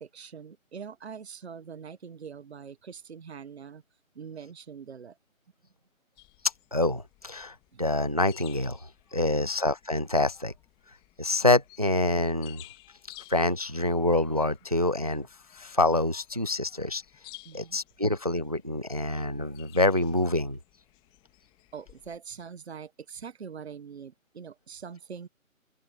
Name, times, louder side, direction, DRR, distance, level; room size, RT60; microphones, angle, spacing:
voice 1, 0.0-3.8 4.1-5.2 7.7-7.8 17.4-17.8 21.7-25.3, right 6 dB, 50° right, 1.3 m, -43 dB
sound 1, 6.2-22.2, left 21 dB, 10° left, 2.2 m, -55 dB
voice 2, 6.7-8.8 9.1-10.5 11.2-12.6 13.3-15.3 15.6-17.0 17.5-20.6, left 2 dB, 30° right, 0.4 m, -26 dB
open air
figure-of-eight pair, 150°, 42 cm